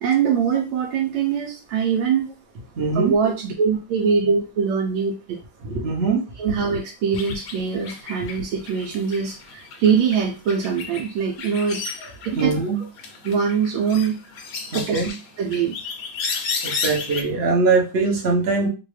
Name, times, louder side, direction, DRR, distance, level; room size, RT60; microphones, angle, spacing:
voice 1, 0.0-2.3 2.9-5.4 6.4-11.8 12.4-12.5 13.2-14.2 14.7-15.0 15.4-15.7, right 6 dB, 85° right, 0 dB, 1.4 m, -22 dB
voice 2, 2.8-3.2 5.6-6.2 12.3-12.8 14.7-15.1 16.6-18.7, right 4 dB, 50° right, 0 dB, 0.8 m, -21 dB
sound 1, 7.1-12.7 13.0-17.2, left 5 dB, 70° left, 0.8 m, -33 dB
3.0 x 2.7 x 3.1 m, 0.31 s
omnidirectional pair, 2.2 m